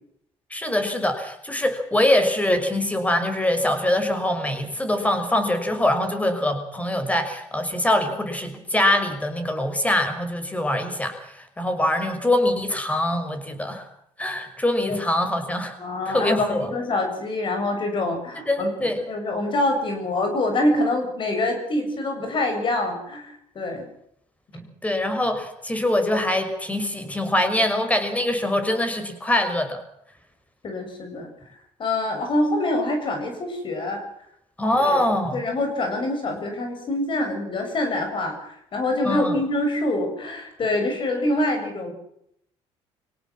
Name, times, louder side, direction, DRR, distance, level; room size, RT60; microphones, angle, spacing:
voice 1, 0.5-13.8 14.2-15.7 16.1-16.7 18.5-19.0 24.8-29.8 34.6-35.4 39.0-39.4, left 1 dB, 10° left, 8 dB, 6.0 m, -23 dB
voice 2, 15.8-18.7 19.1-23.9 30.6-31.3 31.8-34.0 34.7-41.9, left 2 dB, 45° left, 5 dB, 7.8 m, -25 dB
25.5 x 18.0 x 7.5 m, 0.73 s
cardioid pair, 95°, 12 cm